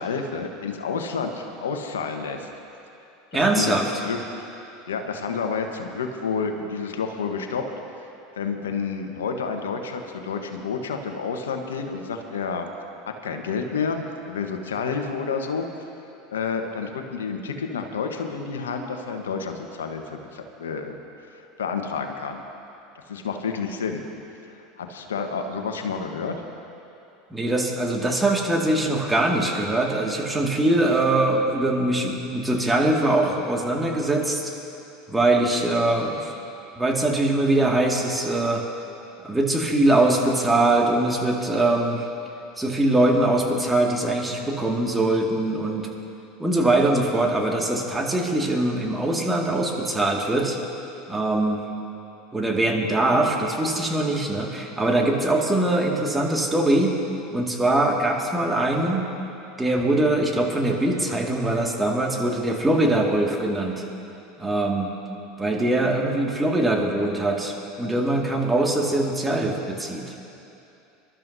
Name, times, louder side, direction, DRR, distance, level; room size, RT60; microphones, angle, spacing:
voice 1, 0.0-2.5 3.3-3.7 4.0-4.2 4.9-7.6 8.4-12.7 13.1-15.7 16.3-20.9 21.2-22.4 22.9-24.0 24.5-26.3, left 5 dB, 90° left, 5 dB, 1.1 m, -29 dB
voice 2, 3.3-3.9 27.3-34.5 35.1-36.3 36.8-38.6 39.2-42.1 42.6-45.9 46.4-50.6 51.1-51.6 52.3-57.0 57.3-59.1 59.6-63.8 64.4-64.9 65.4-70.3, right 2 dB, 10° right, 0 dB, 2.0 m, -22 dB
25.5 x 12.5 x 2.7 m, 2.7 s
hypercardioid pair, 90°, 0 cm